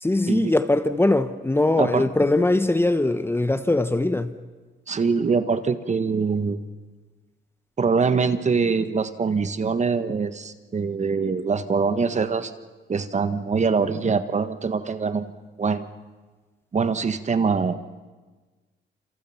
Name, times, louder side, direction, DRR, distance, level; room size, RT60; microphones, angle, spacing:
voice 1, 0.0-4.4, left 2 dB, 10° left, 1.0 m, -21 dB
voice 2, 4.9-6.6 7.8-12.5 12.9-15.9 16.7-17.8, right 5 dB, 35° right, 1.4 m, -23 dB
28.0 x 27.0 x 5.9 m
cardioid pair, 90°, 20 cm